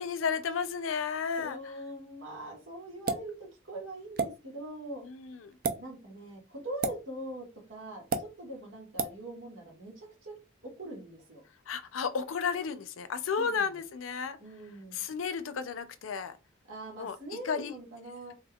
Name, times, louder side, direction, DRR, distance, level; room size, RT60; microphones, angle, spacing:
voice 1, 0.0-1.6 5.0-5.5 11.7-14.4 14.9-16.4 17.0-17.8, left 6 dB, 85° left, 0.4 m, -33 dB
voice 2, 1.3-5.0 5.8-10.3 10.6-11.4 13.4-13.6 14.4-15.0 16.7-18.3, right 1 dB, 80° right, 1.5 m, -42 dB
sound 1, 3.1-3.3 4.2-4.3 5.5-5.8 6.8-7.0 8.1-8.3 9.0-9.2, right 4 dB, 45° right, 0.4 m, -30 dB
3.5 x 3.2 x 2.3 m
head